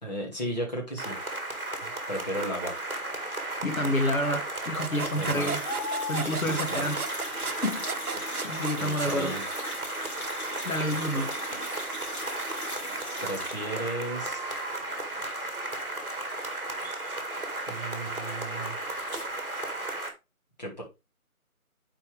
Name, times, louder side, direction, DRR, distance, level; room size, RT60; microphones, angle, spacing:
voice 1, 0.0-1.2 1.8-2.8 5.2-5.5 6.4-6.9 8.7-9.4 11.1-11.3 13.2-14.5 17.7-18.8 20.6-20.8, right 1 dB, 30° left, 2.4 m, -35 dB
sound 1, 1.0-20.1, right 2 dB, 40° right, 1.8 m, -34 dB
voice 2, 3.6-5.6 6.0-7.0 7.4-9.3 10.6-11.3, left 1 dB, 65° left, 1.5 m, -29 dB
sound 2, 4.3-9.2, right 5 dB, 75° right, 0.8 m, -35 dB
sound 3, 4.7-13.8 18.9-19.2, equal, 45° left, 2.8 m, -40 dB
9.2 x 4.5 x 3.4 m
figure-of-eight pair, 170°, 44 cm